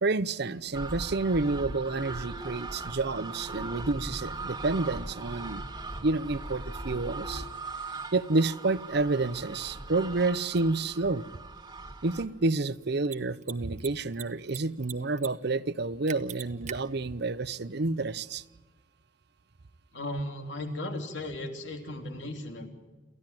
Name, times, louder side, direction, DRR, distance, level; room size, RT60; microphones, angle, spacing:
voice 1, 0.0-5.6 6.0-7.4 8.1-11.2 12.0-18.4, right 3 dB, 60° right, 17 dB, 0.8 m, -29 dB
sound 1, 0.7-12.3, right 2 dB, 20° right, 2.0 m, -39 dB
Mechanisms, 10.5-10.6 13.0-13.2 13.4-13.5 13.8-14.6 14.8-15.3 15.5-15.6 16.1-16.7, right 10 dB, 40° right, 1.1 m, -39 dB
voice 2, 19.9-22.7, left 1 dB, 65° left, 5 dB, 3.4 m, -36 dB
28.0 x 15.5 x 9.1 m, 1.3 s
head